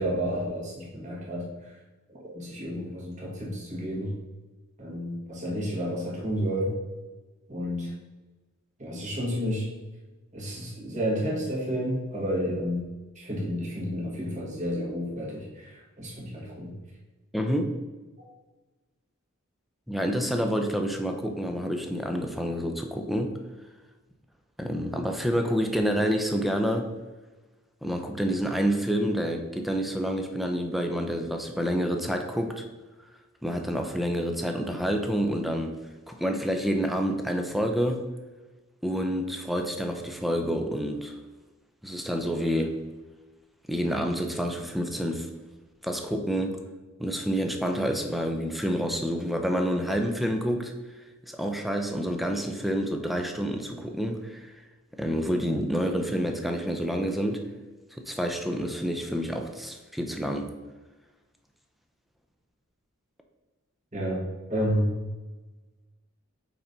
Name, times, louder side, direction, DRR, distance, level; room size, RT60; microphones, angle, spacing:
voice 1, 0.0-1.7 2.1-4.2 4.8-6.8 7.5-7.9 8.8-9.7 10.3-12.9 13.2-16.7 63.9-64.2 64.5-64.9, equal, 35° right, -4 dB, 1.9 m, -31 dB
voice 2, 17.3-17.8 19.9-23.4 24.6-26.9 27.8-32.6 33.4-35.8 36.1-38.1 38.8-41.2 41.8-42.7 43.7-45.3 45.8-46.6 47.0-50.7 51.3-54.5 54.9-57.5 58.0-60.5, equal, ahead, 4 dB, 0.7 m, -28 dB
5.6 x 4.3 x 5.2 m, 1.2 s
head